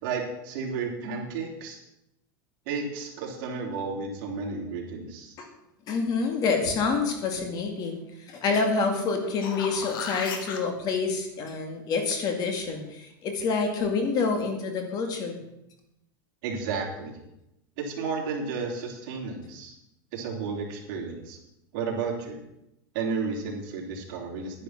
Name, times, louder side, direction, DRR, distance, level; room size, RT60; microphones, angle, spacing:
voice 1, 0.0-1.8 2.7-5.3 16.4-17.2 17.8-19.7 20.1-21.4 21.7-22.4 22.9-24.6, right 4 dB, 55° right, -1 dB, 3.6 m, -32 dB
voice 2, 5.9-8.0 8.3-15.4, left 4 dB, 35° left, 5 dB, 2.2 m, -27 dB
sound 1, 9.1-10.6 15.4-15.5, left 6 dB, 80° left, 2.1 m, -35 dB
11.0 x 9.9 x 5.9 m, 0.85 s
supercardioid pair, 150°, 11 cm